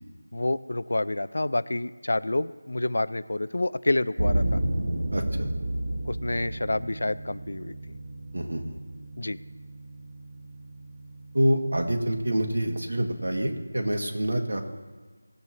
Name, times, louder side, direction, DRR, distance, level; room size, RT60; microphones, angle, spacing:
voice 1, 0.3-4.6 6.0-7.8 9.2-9.4, left 2 dB, 65° left, 16 dB, 0.5 m, -28 dB
sound 1, 4.2-13.2, right 1 dB, 65° right, 1.1 m, -32 dB
voice 2, 5.1-5.5 8.3-8.8 11.3-14.6, equal, 85° right, 3 dB, 1.9 m, -26 dB
18.5 x 8.0 x 3.1 m, 1.4 s
figure-of-eight pair, 180°, 0 cm